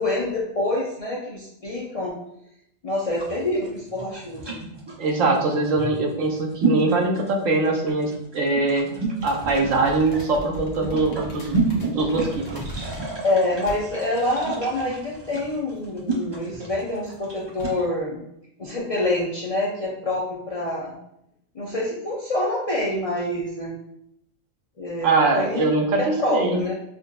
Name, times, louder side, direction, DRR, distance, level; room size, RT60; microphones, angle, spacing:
voice 1, 0.0-2.1 2.8-4.6 13.2-18.2 18.6-21.0 21.5-23.8 24.8-25.6 26.0-26.7, left 1 dB, 55° left, -5 dB, 0.4 m, -26 dB
sound 1, 3.1-17.8, right 4 dB, 30° right, 0.5 m, -31 dB
voice 2, 5.0-8.9 9.2-12.5 25.0-26.6, right 3 dB, 85° right, 2 dB, 1.1 m, -22 dB
sound 2, 9.2-13.2 13.7-14.2 14.5-14.6 15.7-16.2 16.9-17.1 17.4-17.7, left 1 dB, 40° left, 0.8 m, -39 dB
5.8 x 2.3 x 2.2 m, 0.77 s
omnidirectional pair, 1.3 m